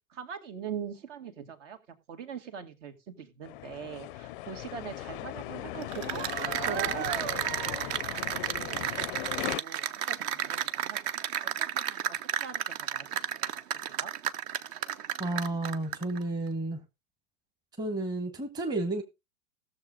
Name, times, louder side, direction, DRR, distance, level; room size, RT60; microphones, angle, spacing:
voice 1, 0.1-6.2 6.6-7.9 8.4-11.1 11.4-13.3 13.9-14.1, right 7 dB, 55° right, 2.3 m, -43 dB
sound 1, 3.4-9.6, left 17 dB, 40° left, 0.5 m, -38 dB
Cheering / Applause, 5.8-16.2, right 10 dB, 30° right, 0.6 m, -32 dB
voice 2, 15.2-16.8 17.8-19.0, right 2 dB, 10° right, 1.1 m, -32 dB
16.0 x 7.0 x 3.8 m
hypercardioid pair, 110°, 43 cm